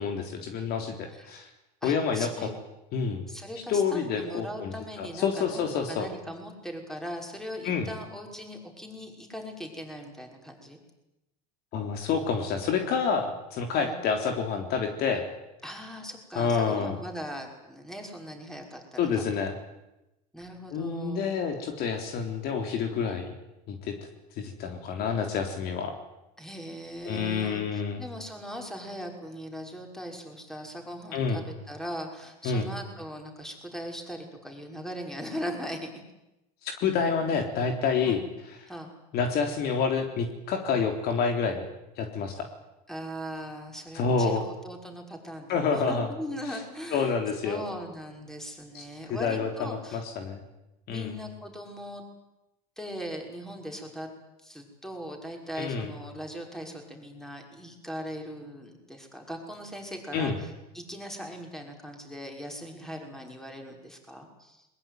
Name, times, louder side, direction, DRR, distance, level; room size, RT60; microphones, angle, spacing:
voice 1, 0.0-1.5 1.8-2.3 2.9-3.3 3.7-6.1 7.6-7.9 11.7-15.3 16.4-17.0 19.0-19.5 20.7-23.3 23.7-24.0 24.4-25.9 27.1-28.0 31.1-31.4 32.4-32.7 36.6-38.2 39.1-41.7 42.0-42.5 43.9-44.4 45.5-46.1 46.5-46.6 46.9-47.6 48.7-48.8 49.1-50.4 50.9-51.1 55.6-55.9 60.1-60.4, left 5 dB, 55° left, 5 dB, 3.6 m, -28 dB
voice 2, 1.8-2.5 3.3-10.8 13.8-13.9 15.6-19.4 20.3-21.3 26.4-35.9 38.0-38.3 38.7-38.9 42.9-47.1 47.4-50.0 50.9-52.0 52.8-54.1 54.4-64.7, equal, ahead, 2 dB, 5.9 m, -40 dB
22.0 x 21.0 x 9.5 m, 0.94 s
supercardioid pair, 110°, 20 cm